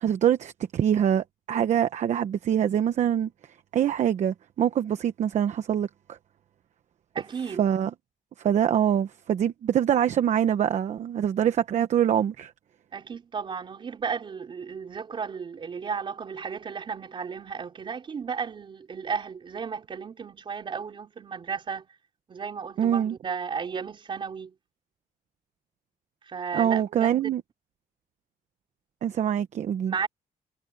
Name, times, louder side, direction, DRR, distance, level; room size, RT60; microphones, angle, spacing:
voice 1, 0.0-3.3 3.7-6.2 7.6-7.9 8.4-12.5 22.8-23.2 26.5-27.4 29.0-29.9, right 9 dB, 50° right, 1.0 m, -24 dB
voice 2, 7.1-7.6 12.9-21.9 22.3-24.5 26.3-27.2 29.9-30.1, right 6 dB, 35° right, 4.5 m, -34 dB
cardioid pair, 170°, 15 cm